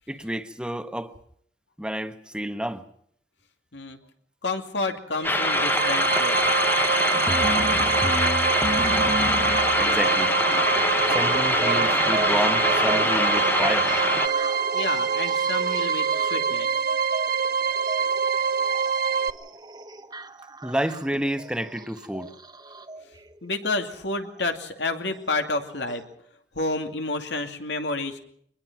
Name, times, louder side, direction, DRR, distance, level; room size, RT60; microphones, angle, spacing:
voice 1, 0.1-1.1 1.8-2.8 9.8-10.4 10.8-13.9 20.6-22.3, equal, 5° right, 1.2 m, -30 dB
voice 2, 4.4-6.5 14.7-16.7 23.4-26.1 26.5-28.2, left 3 dB, 75° left, 2.6 m, -30 dB
sound 1, 5.1-19.3, right 6 dB, 60° right, 0.9 m, -25 dB
sound 2, 5.2-14.3, left 2 dB, 10° left, 0.9 m, -24 dB
sound 3, 7.1-23.0 24.2-24.3 25.1-25.2 25.9-26.0, right 1 dB, 25° right, 1.1 m, -35 dB
23.5 x 20.5 x 6.1 m
head